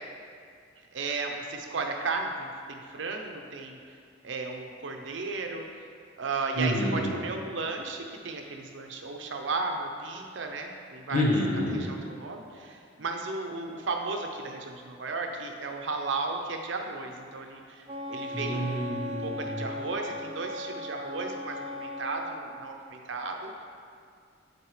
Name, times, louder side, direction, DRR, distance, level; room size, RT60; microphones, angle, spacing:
voice 1, 0.9-3.8 4.2-5.7 6.2-11.3 11.7-18.9 19.2-23.6, right 3 dB, 70° right, 3 dB, 0.7 m, -34 dB
voice 2, 6.5-7.1 11.1-11.8 18.3-19.7, equal, 45° left, -4 dB, 1.3 m, -28 dB
Wind instrument woodwind instrument, 17.9-22.5, left 1 dB, 30° right, 0.4 m, -37 dB
9.3 x 4.4 x 3.2 m, 2.2 s
head